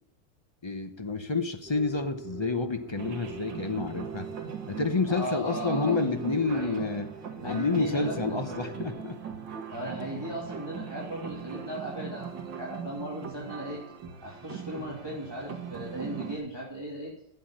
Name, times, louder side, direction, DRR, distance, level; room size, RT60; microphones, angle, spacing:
voice 1, 0.6-4.3 4.7-7.1 7.4-9.2, left 3 dB, 35° left, 6 dB, 0.4 m, -29 dB
sound 1, 1.6-8.9, right 5 dB, 40° right, 5.2 m, -45 dB
sound 2, 3.0-16.4, right 7 dB, 85° right, 2.1 m, -40 dB
voice 2, 5.1-6.0 6.5-6.9 7.4-8.4 9.7-13.8 14.2-17.1, right 1 dB, 15° right, -4 dB, 2.7 m, -37 dB
12.0 x 7.8 x 8.7 m, 0.75 s
omnidirectional pair, 1.9 m